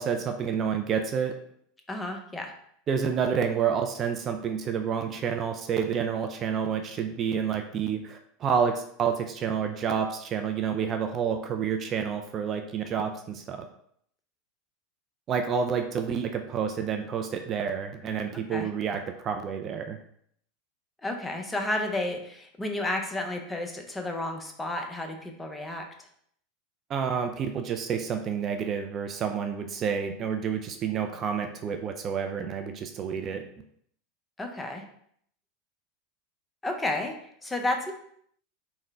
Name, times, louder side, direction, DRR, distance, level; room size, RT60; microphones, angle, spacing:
voice 1, 0.0-1.3 2.9-13.6 15.3-20.0 26.9-33.5, right 7 dB, 40° right, 5 dB, 0.4 m, -29 dB
voice 2, 1.9-2.5 18.5-18.7 21.0-25.9 34.4-34.8 36.6-37.1 37.4-37.9, left 1 dB, 15° left, 3 dB, 0.6 m, -31 dB
3.6 x 2.1 x 3.4 m, 0.67 s
hypercardioid pair, 90°, 0 cm